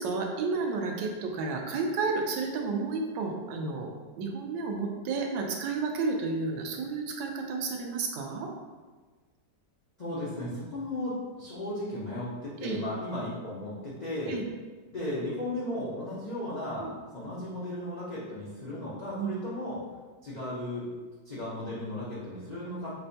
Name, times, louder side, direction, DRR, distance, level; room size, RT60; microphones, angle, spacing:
voice 1, 0.0-3.9 4.2-8.5 10.4-10.5 12.6-12.8 14.3-14.4 16.8-16.9 19.2-19.3, right 4 dB, 85° right, 2 dB, 1.2 m, -31 dB
voice 2, 10.0-14.3 14.9-16.9 17.1-19.8 20.2-20.9 21.2-23.0, left 1 dB, 80° left, -9 dB, 0.3 m, -35 dB
5.3 x 2.1 x 2.7 m, 1.4 s
omnidirectional pair, 1.9 m